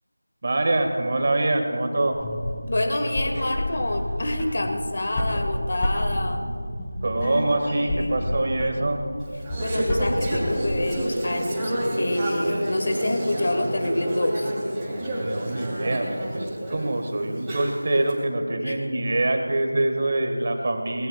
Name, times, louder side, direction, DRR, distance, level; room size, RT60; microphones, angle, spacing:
voice 1, 0.4-2.2 7.0-9.0 15.2-21.1, right 2 dB, 35° right, 4 dB, 1.8 m, -25 dB
sound 1, 2.1-10.9, left 1 dB, 15° left, 2.1 m, -30 dB
voice 2, 2.7-6.4 7.1-7.4 7.8-8.9 9.6-14.5 18.6-18.8, left 1 dB, 40° left, 4 dB, 1.8 m, -28 dB
Conversation / Chatter, 9.2-18.1, right 1 dB, 10° right, 3.1 m, -29 dB
27.0 x 20.5 x 2.4 m, 2.3 s
figure-of-eight pair, 170°, 0 cm